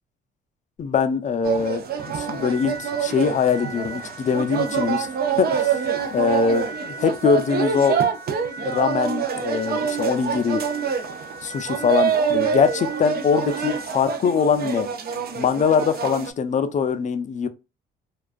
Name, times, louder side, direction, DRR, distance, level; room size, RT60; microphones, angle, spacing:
voice 1, 0.8-1.8 2.1-5.1 5.4-5.8 6.1-8.0 8.6-10.6 11.4-14.9 15.4-17.5, left 6 dB, 40° left, 0.4 m, -22 dB
sound 1, 1.4-16.3, right 7 dB, 50° right, 0.5 m, -26 dB
Siren, 2.0-14.0, right 1 dB, 85° right, 1.0 m, -39 dB
2.3 x 2.2 x 2.4 m
cardioid pair, 90°, 20 cm